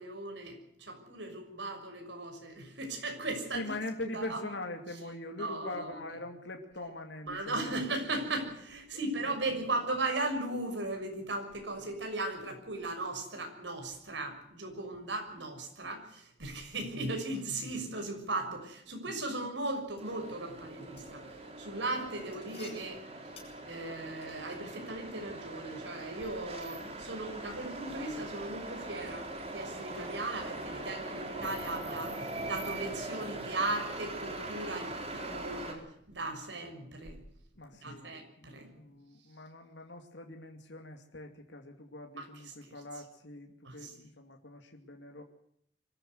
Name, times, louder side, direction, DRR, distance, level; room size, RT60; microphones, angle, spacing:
voice 1, 0.0-3.7 4.1-4.4 5.4-6.0 7.3-23.0 23.6-37.2 37.8-38.7 42.2-42.3 42.7-42.8 43.6-43.9, right 2 dB, 75° right, 4 dB, 6.4 m, -37 dB
voice 2, 3.5-8.0 9.0-9.6 16.6-16.9 37.6-38.1 38.4-45.2, left 2 dB, 75° left, 3 dB, 2.6 m, -43 dB
sound 1, 19.6-24.6, left 4 dB, 35° left, 7.9 m, -57 dB
sound 2, 20.0-35.7, right 2 dB, 35° right, 4.4 m, -41 dB
24.5 x 14.5 x 8.0 m, 0.71 s
head